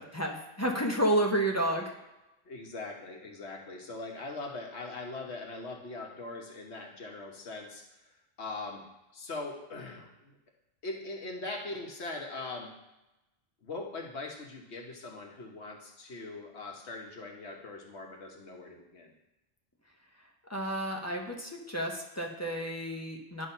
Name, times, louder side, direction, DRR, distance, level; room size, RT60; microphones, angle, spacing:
voice 1, 0.0-1.9 20.5-23.5, right 1 dB, 15° left, 0 dB, 0.9 m, -31 dB
voice 2, 2.4-8.1 8.4-8.8 9.1-10.4 10.8-12.7 13.6-19.1, left 3 dB, 85° left, 1 dB, 1.5 m, -41 dB
10.5 x 3.5 x 5.5 m, 0.95 s
omnidirectional pair, 1.1 m